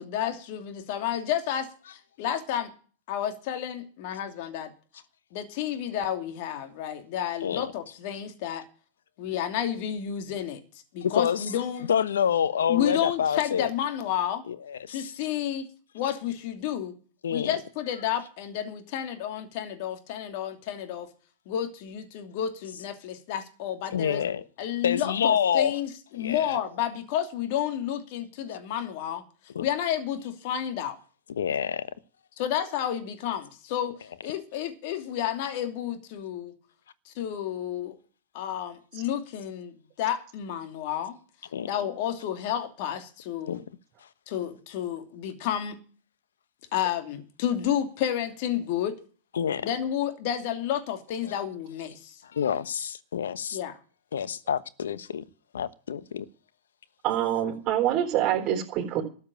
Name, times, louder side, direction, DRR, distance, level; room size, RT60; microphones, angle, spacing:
voice 1, 0.0-1.6 2.2-2.7 3.1-4.7 5.3-8.6 9.2-10.6 10.9-11.9 12.7-14.4 14.9-15.7 15.9-16.9 17.3-21.1 21.5-24.3 24.6-29.2 29.6-31.0 32.4-33.9 34.2-36.5 37.1-38.0 38.3-41.2 41.6-43.6 44.3-45.8 46.7-49.0 49.6-52.2 53.5-53.8, left 10 dB, 55° left, 2.8 m, -31 dB
voice 2, 7.4-7.7 11.0-11.4 11.9-13.7 14.5-15.1 17.2-17.6 23.9-24.4 24.8-25.7 26.1-26.6 29.5-29.6 31.3-31.9 41.5-41.7 43.5-43.6 49.3-49.7 51.2-51.3 52.3-53.6 54.1-55.2 55.5-56.2, left 8 dB, 85° left, 1.1 m, -27 dB
voice 3, 57.0-59.0, right 11 dB, 35° right, 4.0 m, -25 dB
13.5 x 7.3 x 9.0 m
hypercardioid pair, 115°, 0 cm